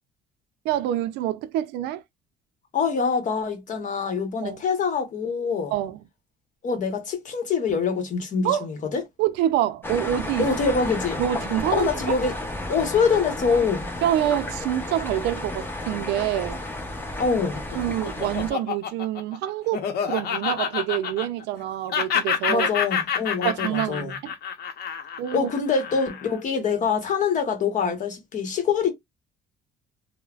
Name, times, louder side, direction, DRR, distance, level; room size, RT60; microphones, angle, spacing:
voice 1, 0.6-2.0 4.4-4.6 5.7-6.0 8.4-8.7 9.2-10.5 11.2-11.9 14.0-16.6 17.7-22.7 23.4-24.3 25.2-25.5, right 12 dB, 85° right, 0.4 m, -26 dB
voice 2, 2.7-5.7 6.6-9.0 10.4-11.2 11.7-12.3 12.7-13.9 17.2-17.6 22.5-24.1 25.3-28.9, left 5 dB, 50° left, 1.0 m, -24 dB
sound 1, 9.8-18.5, left 1 dB, 10° left, 0.8 m, -32 dB
Laughter, 17.4-21.6 21.9-26.4, left 7 dB, 65° left, 0.8 m, -28 dB
3.1 x 2.1 x 2.3 m
cardioid pair, 110°, 17 cm